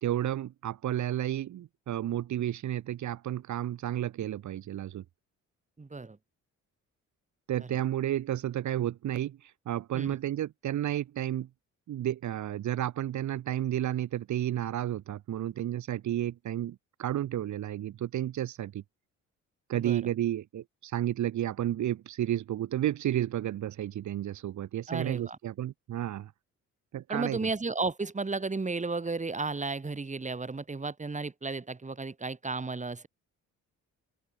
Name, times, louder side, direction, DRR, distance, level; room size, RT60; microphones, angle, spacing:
voice 1, 0.0-5.0 7.5-11.5 11.9-18.8 19.7-26.3 26.9-27.5, right 12 dB, 70° right, 3.0 m, -32 dB
voice 2, 5.8-6.2 9.9-10.2 19.8-20.0 24.9-25.4 27.1-33.1, right 3 dB, 25° right, 6.5 m, -33 dB
open air
cardioid pair, 90°, 30 cm